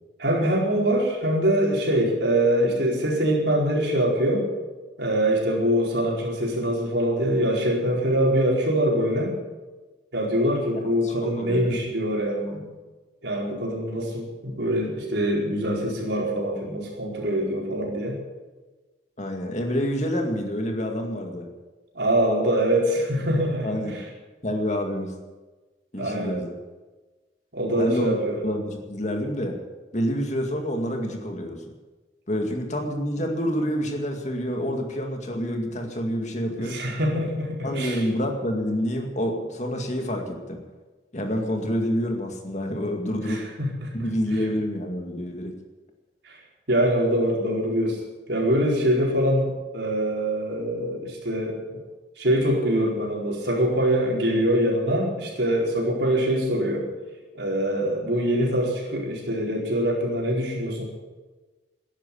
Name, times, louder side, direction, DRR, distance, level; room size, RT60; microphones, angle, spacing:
voice 1, 0.2-4.5 5.0-9.3 10.1-12.7 13.2-18.2 21.9-24.0 26.0-26.4 27.5-28.4 36.6-38.1 43.2-43.9 46.2-46.4 46.7-48.0 48.3-51.8 52.2-56.9 57.3-60.9, right 1 dB, 65° right, -2 dB, 4.7 m, -24 dB
voice 2, 11.0-11.8 19.2-21.5 23.6-24.0 24.4-25.1 25.9-26.5 27.8-28.1 28.4-29.6 29.9-31.6 32.3-36.8 37.6-40.6 41.1-43.4 43.9-45.5, equal, 40° left, 3 dB, 2.2 m, -27 dB
14.0 x 11.0 x 8.5 m, 1.2 s
head